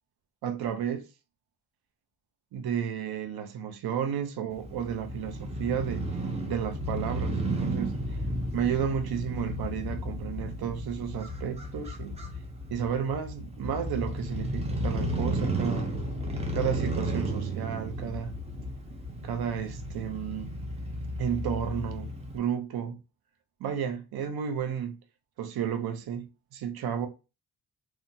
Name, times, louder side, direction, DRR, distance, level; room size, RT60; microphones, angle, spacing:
voice 1, 0.4-1.1 2.5-6.1 6.5-8.0 8.5-12.2 12.7-15.9 16.5-18.3 19.2-20.5 21.2-23.0 23.6-25.0 25.4-27.1, right 8 dB, 65° right, 0.6 m, -32 dB
Crow / Motorcycle, 4.5-22.4, right 1 dB, 15° right, 0.4 m, -33 dB
2.8 x 2.2 x 2.6 m
wide cardioid pair, 170°, 39 cm